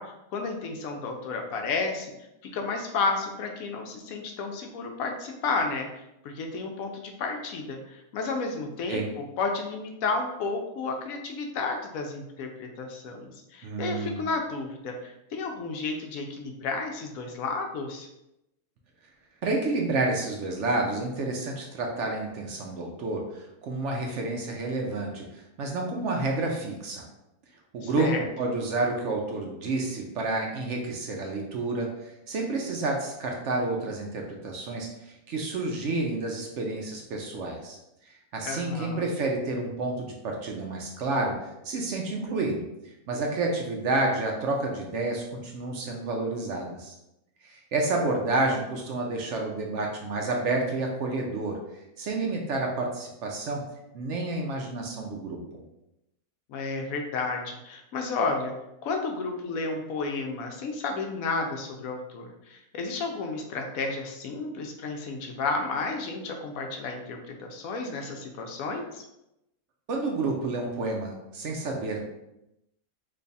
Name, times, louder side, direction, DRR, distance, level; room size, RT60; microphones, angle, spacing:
voice 1, 0.0-2.1 2.4-5.9 6.2-9.0 9.4-18.1 27.8-28.3 38.4-39.1 56.5-58.5 58.8-69.0, left 3 dB, 75° left, 3 dB, 1.0 m, -32 dB
voice 2, 13.6-14.2 19.4-27.0 27.7-28.1 28.4-37.8 38.1-41.3 41.6-42.7 43.1-46.9 47.4-51.6 52.0-53.6 53.9-55.6 69.9-72.0, right 2 dB, 65° right, 1 dB, 0.8 m, -29 dB
3.2 x 2.3 x 3.9 m, 0.88 s
omnidirectional pair, 1.6 m